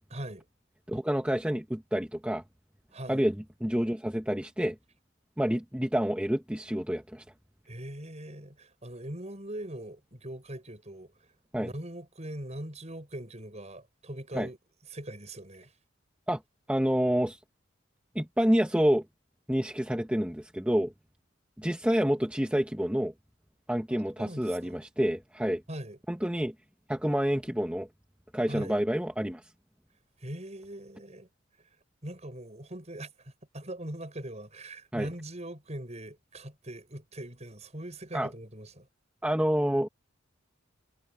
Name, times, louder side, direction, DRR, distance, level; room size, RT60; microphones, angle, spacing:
voice 1, 0.1-0.4 2.9-3.2 7.6-11.3 11.5-14.6 14.9-15.7 23.9-24.7 25.7-26.0 28.5-28.8 30.2-31.3 32.0-38.9, right 1 dB, 35° right, 6.8 m, -41 dB
voice 2, 0.9-2.4 3.1-4.8 5.4-7.2 11.5-11.7 14.3-14.5 16.3-16.4 16.7-17.4 18.1-19.0 19.5-20.9 21.6-23.1 23.7-25.6 26.1-26.5 26.9-27.9 28.3-29.4 34.9-35.1 38.1-38.3 39.2-39.9, equal, 5° right, 1.1 m, -28 dB
head